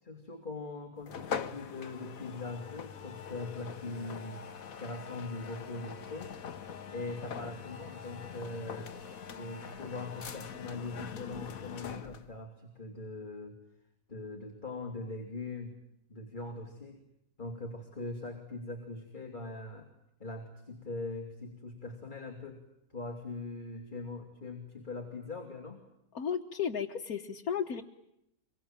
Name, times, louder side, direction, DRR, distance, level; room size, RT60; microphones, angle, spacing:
voice 1, 0.0-4.4 4.8-6.3 6.9-8.9 9.4-13.6 14.1-15.8 16.1-17.0 17.4-19.9 20.2-22.6 22.9-25.8, left 2 dB, 30° left, 2 dB, 3.3 m, -41 dB
sound 1, 1.1-12.3, left 7 dB, 70° left, 1.6 m, -43 dB
voice 2, 26.2-27.8, left 7 dB, 90° left, 2 dB, 1.8 m, -34 dB
25.5 x 23.5 x 9.0 m, 0.82 s
omnidirectional pair, 1.5 m